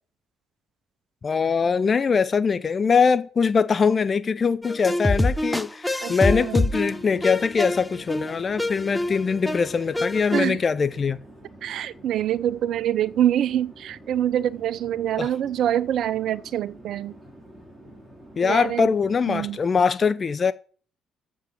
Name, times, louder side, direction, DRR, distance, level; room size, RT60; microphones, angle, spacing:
voice 1, 1.2-11.2 15.2-15.3 18.4-20.5, left 5 dB, 40° left, 0.7 m, -22 dB
sound 1, 4.6-10.4, left 1 dB, 10° left, 1.0 m, -25 dB
voice 2, 6.0-6.7 10.3-10.6 11.6-17.2 18.4-18.9 19.3-19.6, right 11 dB, 65° right, 0.5 m, -25 dB
Chatter / Fixed-wing aircraft airplane, 6.4-19.8, right 1 dB, 20° right, 5.4 m, -48 dB
8.4 x 7.4 x 6.7 m
hypercardioid pair, 55°, 0 cm